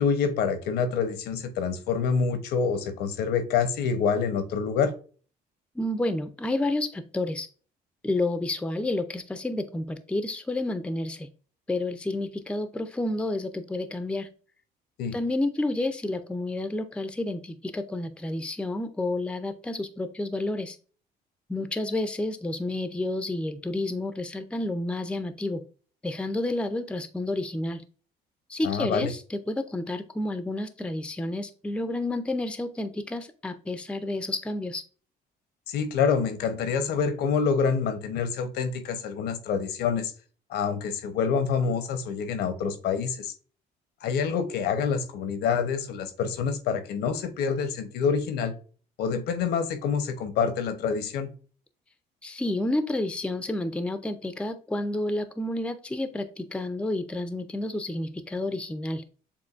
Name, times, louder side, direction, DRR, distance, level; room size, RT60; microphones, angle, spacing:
voice 1, 0.0-4.9 15.0-15.1 28.6-29.1 35.7-40.1 40.5-43.3 44.0-48.5 49.0-51.3, left 6 dB, 80° left, 0.9 m, -27 dB
voice 2, 5.8-7.5 8.0-11.3 11.7-14.3 15.1-20.8 21.5-25.6 26.0-27.8 28.5-34.8 52.2-59.0, left 2 dB, 5° left, 0.5 m, -30 dB
6.9 x 2.6 x 2.5 m
cardioid pair, 110°, 17 cm